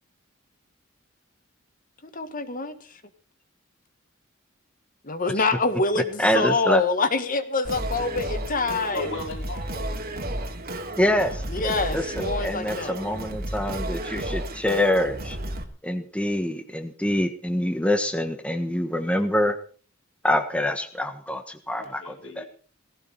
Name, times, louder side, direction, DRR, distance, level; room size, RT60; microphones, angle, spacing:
voice 1, 2.0-2.8 5.0-9.1 11.5-13.0, left 3 dB, 45° left, 9 dB, 1.9 m, -26 dB
voice 2, 6.2-6.8 11.0-15.4 15.8-19.6 20.2-22.4, left 1 dB, 5° left, 7 dB, 1.3 m, -25 dB
Singing, 7.6-15.6, right 1 dB, 50° right, 2.8 m, -32 dB
voice 3, 8.9-10.0 21.7-22.5, left 2 dB, 85° left, 2 dB, 4.8 m, -36 dB
18.0 x 17.0 x 4.2 m, 0.41 s
head